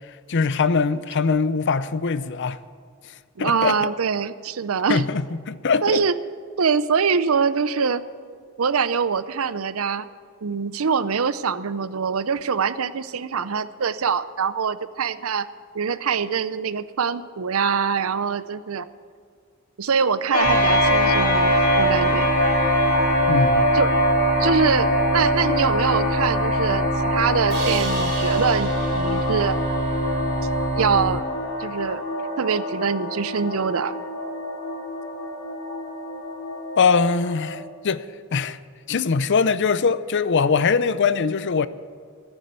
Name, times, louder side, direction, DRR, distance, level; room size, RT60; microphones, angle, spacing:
voice 1, 0.3-2.6 3.4-3.9 4.9-6.0 23.3-23.7 36.8-38.0 38.3-38.6 38.9-41.7, left 5 dB, 55° left, 0.6 m, -22 dB
voice 2, 3.4-5.1 5.8-6.1 6.6-8.0 8.6-10.1 10.4-15.5 15.7-18.9 19.8-22.3 23.7-23.9 24.4-29.6 30.7-31.2 31.6-32.0 32.4-33.9, right 6 dB, 75° right, 0.6 m, -24 dB
sound 1, 20.3-37.6, equal, 75° left, 2.5 m, -23 dB
sound 2, 20.4-31.2, right 1 dB, 30° right, 0.8 m, -28 dB
Crash cymbal, 27.5-30.6, right 4 dB, 55° right, 4.3 m, -36 dB
14.5 x 9.9 x 8.1 m
head